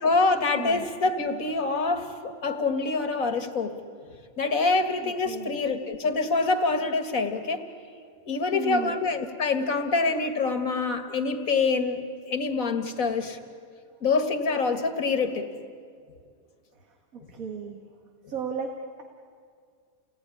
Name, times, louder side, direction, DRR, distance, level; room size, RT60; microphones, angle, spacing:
voice 1, 0.0-3.8 4.4-7.6 8.3-13.4 14.0-15.5, left 3 dB, 70° left, 7 dB, 2.1 m, -26 dB
voice 2, 0.5-0.9 5.0-5.6 8.0-8.2 8.5-9.0 17.1-17.8 18.3-19.0, right 6 dB, 70° right, 3 dB, 2.0 m, -35 dB
29.5 x 19.0 x 9.8 m, 2.2 s
omnidirectional pair, 1.5 m